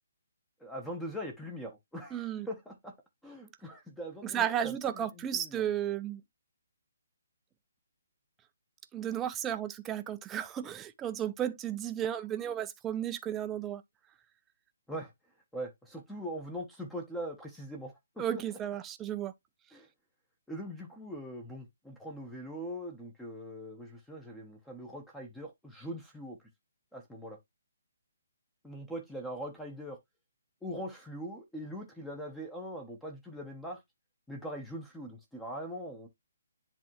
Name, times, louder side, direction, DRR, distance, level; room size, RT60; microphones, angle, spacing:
voice 1, 0.6-2.9 3.2-5.6 14.9-15.1 15.5-18.4 19.7-19.9 20.5-26.4 26.9-27.4 28.6-30.0 30.6-33.8 34.3-36.1, equal, 5° left, 0.9 m, -41 dB
voice 2, 2.1-2.5 4.2-6.2 8.9-13.8 18.2-19.3, right 10 dB, 10° right, 0.5 m, -34 dB
10.0 x 3.4 x 3.0 m
hypercardioid pair, 165°, 0 cm